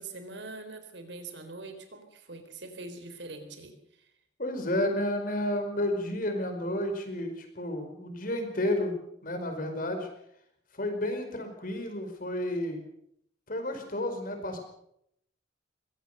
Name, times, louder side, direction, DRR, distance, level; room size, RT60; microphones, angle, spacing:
voice 1, 0.0-3.7, right 3 dB, 80° right, 8 dB, 3.9 m, -43 dB
voice 2, 4.4-10.1 10.7-12.8 13.5-14.6, left 1 dB, 50° left, 6 dB, 4.9 m, -31 dB
22.5 x 17.5 x 6.7 m, 0.73 s
head